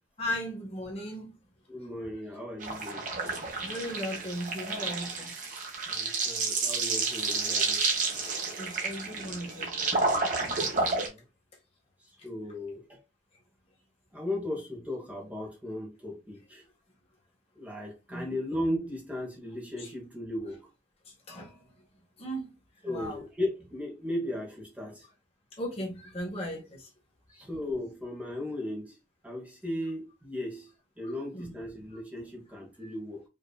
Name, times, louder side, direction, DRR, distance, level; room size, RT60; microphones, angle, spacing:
voice 1, 0.2-1.3 3.5-5.6 8.2-10.1 10.4-10.5 18.1-18.2 19.8-19.9 21.3-21.6 22.2-22.5 22.8-23.2 25.6-26.9 31.0-31.5 32.8-32.9, equal, 35° left, 1.4 m, -37 dB
voice 2, 1.7-3.2 5.9-7.8 10.7-11.2 12.2-13.0 14.1-16.6 17.5-20.7 22.8-25.1 27.3-29.0 29.2-30.7 31.0-33.2, left 1 dB, 10° right, 1.2 m, -36 dB
sound 1, 2.6-11.1, right 3 dB, 45° right, 1.3 m, -30 dB
5.3 x 2.9 x 2.3 m
head